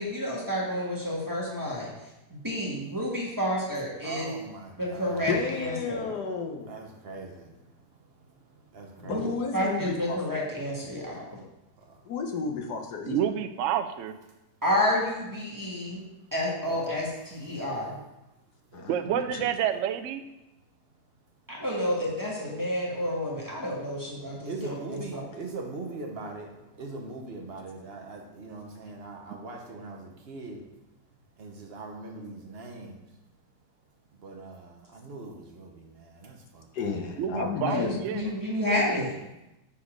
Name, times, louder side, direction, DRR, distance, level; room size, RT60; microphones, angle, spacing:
voice 1, 0.0-1.9 2.3-4.3 4.8-5.3 5.6-6.1 9.0-9.3 9.5-11.2 14.6-16.0 16.3-18.0 21.5-25.2 37.7-39.1, left 1 dB, 10° right, -5 dB, 1.3 m, -30 dB
voice 2, 4.0-5.8 6.7-7.5 8.7-9.4 16.6-16.8 18.7-18.9 24.5-26.5 26.8-30.6 31.4-33.0 34.2-36.9, right 3 dB, 45° right, 2 dB, 0.9 m, -41 dB
voice 3, 5.3-6.7 9.1-10.4 12.0-13.2 18.7-19.5 36.7-38.0, left 5 dB, 70° left, 3 dB, 1.3 m, -32 dB
voice 4, 13.0-14.2 18.9-20.2 37.2-38.3, right 9 dB, 85° right, 9 dB, 0.6 m, -29 dB
7.1 x 4.2 x 5.0 m, 0.93 s
omnidirectional pair, 1.9 m